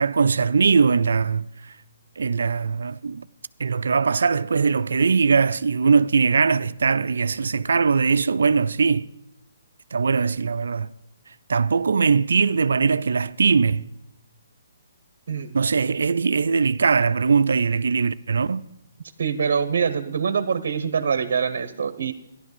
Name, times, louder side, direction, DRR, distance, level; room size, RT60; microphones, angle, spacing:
voice 1, 0.0-1.7 2.2-3.3 3.6-9.1 9.9-10.9 11.5-13.9 15.5-18.6, right 5 dB, 80° right, 0.5 m, -21 dB
voice 2, 19.2-22.1, right 6 dB, 60° right, 1.0 m, -24 dB
13.5 x 11.0 x 6.8 m
hypercardioid pair, 155°, 0 cm